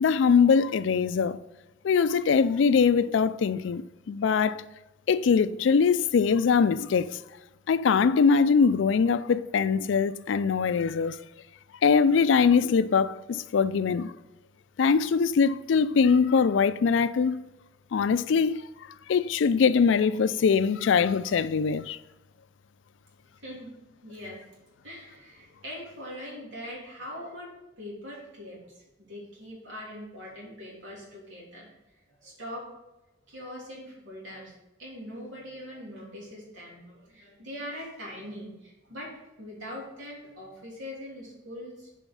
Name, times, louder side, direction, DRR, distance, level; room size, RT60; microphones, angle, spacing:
voice 1, 0.0-1.4 1.8-4.6 5.1-7.2 7.7-11.2 11.8-14.1 14.8-17.4 17.9-18.7 19.1-22.0, left 5 dB, 70° left, 0.4 m, -22 dB
voice 2, 23.4-23.7 24.0-24.4 24.8-27.5 27.8-31.7 32.1-32.7 33.3-34.5 34.8-39.1 39.4-41.9, equal, 85° right, 3.1 m, -42 dB
7.1 x 5.0 x 5.4 m
head